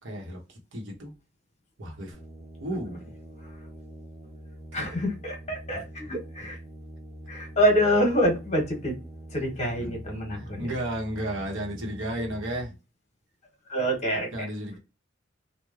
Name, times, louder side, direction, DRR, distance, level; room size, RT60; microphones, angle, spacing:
voice 1, 0.0-1.1 1.8-2.2 2.6-3.1 4.8-5.0 5.7-5.8 9.8-9.9 10.4-12.8 14.3-14.8, right 1 dB, 70° right, 1.0 m, -33 dB
sound 1, 2.1-12.6, right 1 dB, 20° right, 0.5 m, -44 dB
voice 2, 4.7-6.6 7.3-8.9 9.3-10.7 13.7-14.3, equal, 35° left, 1.0 m, -26 dB
3.1 x 2.2 x 2.4 m
head